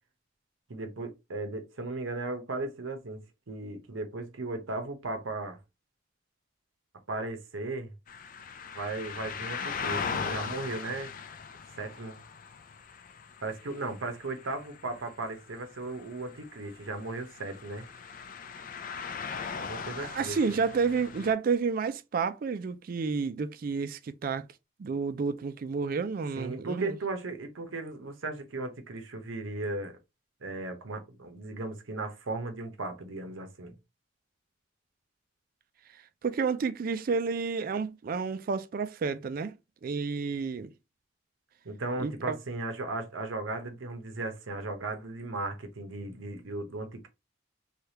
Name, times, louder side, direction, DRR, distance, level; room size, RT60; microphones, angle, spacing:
voice 1, 0.7-5.6 7.1-7.9 8.7-11.1 11.8-12.2 13.4-17.9 19.5-20.4 26.4-30.0 30.4-33.8 41.6-47.1, right 2 dB, 90° right, 0.8 m, -36 dB
sound 1, 8.1-21.3, left 6 dB, 45° left, 0.4 m, -40 dB
voice 2, 20.0-24.5 24.8-27.0 36.2-39.5 39.8-40.7 42.0-42.4, right 5 dB, 45° right, 0.3 m, -30 dB
3.3 x 2.3 x 2.8 m
head